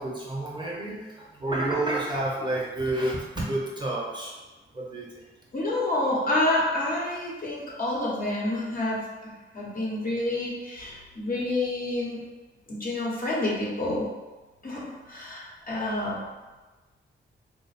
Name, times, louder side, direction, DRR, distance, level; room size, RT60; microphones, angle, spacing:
voice 1, 0.0-4.4 4.7-5.2, right 1 dB, 20° right, -4 dB, 0.9 m, -30 dB
voice 2, 5.5-12.2 12.7-14.1 14.6-16.2, left 2 dB, 45° left, -5 dB, 1.1 m, -28 dB
3.1 x 2.1 x 4.1 m, 1.2 s
cardioid pair, 80°, 21 cm